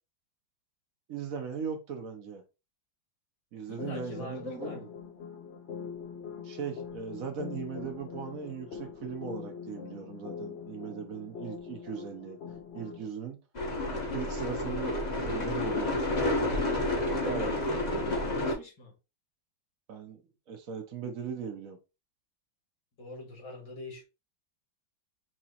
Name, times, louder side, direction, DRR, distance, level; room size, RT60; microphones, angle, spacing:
voice 1, 1.1-2.4 3.5-4.9 6.4-12.4 12.7-13.4 14.1-16.0 17.2-17.5 19.9-20.2 20.5-21.8, right 6 dB, 60° right, 1.0 m, -38 dB
voice 2, 3.7-4.8 17.2-18.9 23.0-24.0, left 3 dB, 60° left, 2.5 m, -43 dB
sound 1, 3.8-13.1, left 7 dB, 80° left, 0.6 m, -43 dB
sound 2, 13.5-18.5, left 1 dB, 30° left, 0.9 m, -30 dB
6.1 x 2.9 x 2.9 m
omnidirectional pair, 2.1 m